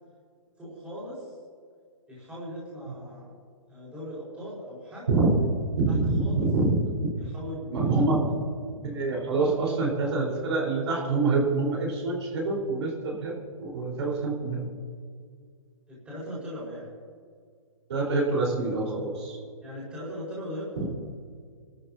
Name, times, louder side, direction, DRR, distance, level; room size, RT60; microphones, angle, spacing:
voice 1, 0.6-1.4 2.1-3.3 3.7-5.1 5.9-6.5 7.2-7.9 8.3-8.4 15.9-16.9 19.6-20.9, equal, 5° right, -8 dB, 4.9 m, -39 dB
voice 2, 5.6-6.8 7.7-8.3 8.8-14.6 17.9-19.4, right 3 dB, 50° right, -3 dB, 4.4 m, -26 dB
28.5 x 13.5 x 2.8 m, 2.1 s
hypercardioid pair, 175°, 18 cm